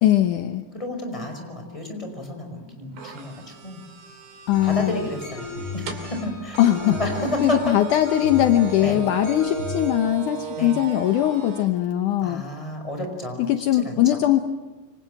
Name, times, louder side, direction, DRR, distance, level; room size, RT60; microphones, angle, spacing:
voice 1, 0.0-0.7 4.5-5.0 6.6-7.0 7.4-12.4 13.4-14.4, left 12 dB, 75° left, 7 dB, 1.9 m, -20 dB
voice 2, 0.7-3.8 4.6-6.6 7.0-7.8 8.8-9.0 10.6-10.8 12.2-13.5 13.7-14.2, left 1 dB, 5° left, 4 dB, 4.9 m, -31 dB
sound 1, 3.0-11.7, right 7 dB, 75° right, 4.9 m, -37 dB
sound 2, 4.5-9.9, left 5 dB, 25° left, 7.2 m, -36 dB
28.0 x 25.5 x 7.7 m, 1.2 s
omnidirectional pair, 5.0 m